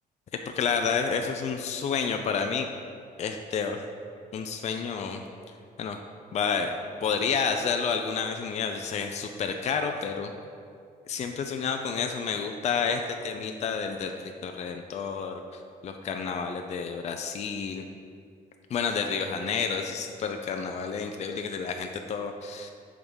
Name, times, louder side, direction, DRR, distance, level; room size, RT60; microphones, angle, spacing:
voice 1, 0.6-2.7 3.2-3.8 4.3-5.2 5.8-6.0 6.3-6.8 7.0-10.3 11.1-17.8 18.7-22.7, left 6 dB, 45° left, 4 dB, 0.5 m, -30 dB
8.7 x 3.7 x 6.2 m, 2.3 s
cardioid pair, 125°, 16 cm